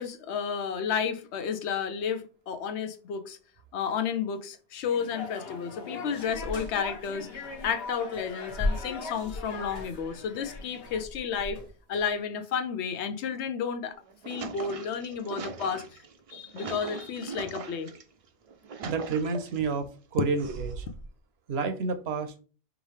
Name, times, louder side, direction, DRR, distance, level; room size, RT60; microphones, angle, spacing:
voice 1, 0.0-3.4 3.7-11.6 11.9-14.0 14.2-15.9 16.3-17.9, left 7 dB, 85° left, 0.9 m, -32 dB
sound 1, 4.8-11.0, left 3 dB, 70° left, 1.1 m, -41 dB
sound 2, 6.2-7.9 8.1-12.1, left 2 dB, 35° left, 1.1 m, -36 dB
sound 3, 13.9-18.0 18.5-19.7 20.4-21.1, right 5 dB, 55° right, 0.4 m, -40 dB
voice 2, 18.8-19.9 20.1-20.9 21.5-22.3, right 4 dB, 75° right, 0.9 m, -29 dB
4.9 x 2.6 x 3.2 m
omnidirectional pair, 1.1 m